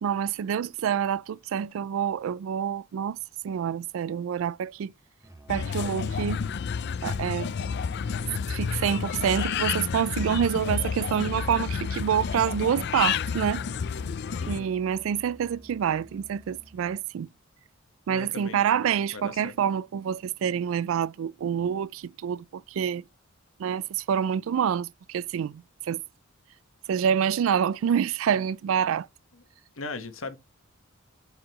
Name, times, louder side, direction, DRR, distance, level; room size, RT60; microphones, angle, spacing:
voice 1, 0.0-3.2 3.4-4.9 5.5-6.4 7.0-7.5 8.5-13.6 14.5-17.3 18.1-23.0 23.6-26.0 26.9-29.1, right 8 dB, 75° right, 0.3 m, -27 dB
Musical instrument, 5.2-17.1, right 1 dB, 15° right, 0.9 m, -51 dB
sound 1, 5.5-14.6, left 6 dB, 55° left, 0.4 m, -30 dB
voice 2, 14.4-14.7 18.1-19.5 29.3-29.4 29.8-30.4, left 3 dB, 75° left, 1.2 m, -39 dB
7.4 x 4.9 x 2.9 m
head